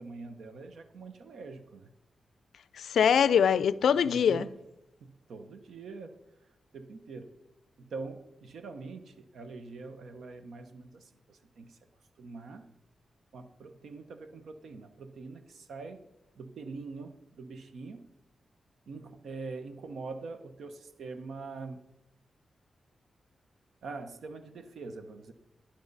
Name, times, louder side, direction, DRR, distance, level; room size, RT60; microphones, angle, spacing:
voice 1, 0.0-1.9 3.9-4.5 5.0-6.2 6.7-7.3 7.8-11.8 12.2-12.7 13.3-16.0 16.4-18.0 18.9-21.8 23.8-25.3, right 3 dB, 85° right, 1.0 m, -44 dB
voice 2, 2.8-4.5, left 7 dB, 90° left, 0.4 m, -23 dB
11.0 x 10.5 x 4.1 m
wide cardioid pair, 165°, 0 cm